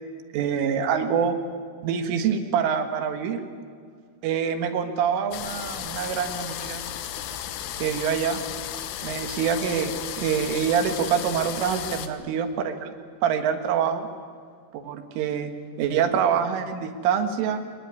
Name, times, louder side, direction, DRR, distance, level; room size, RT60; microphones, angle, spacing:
voice 1, 0.3-1.4 1.8-3.4 4.2-6.9 7.8-8.4 9.0-12.9 13.2-14.1 14.7-15.5 15.8-17.6, right 7 dB, 85° right, 7 dB, 4.2 m, -25 dB
sound 1, 5.3-12.1, left 10 dB, 85° left, 3.8 m, -34 dB
24.0 x 21.0 x 9.5 m, 2.1 s
omnidirectional pair, 5.5 m